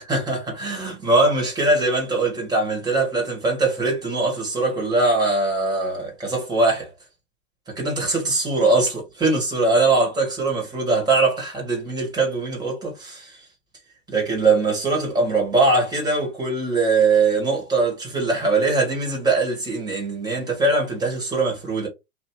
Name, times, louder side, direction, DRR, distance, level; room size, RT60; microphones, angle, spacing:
voice 1, 0.1-6.9 7.7-13.4 14.1-21.9, right 3 dB, 10° right, 1.7 m, -21 dB
3.2 x 2.6 x 4.4 m
hypercardioid pair, 135°, 40 cm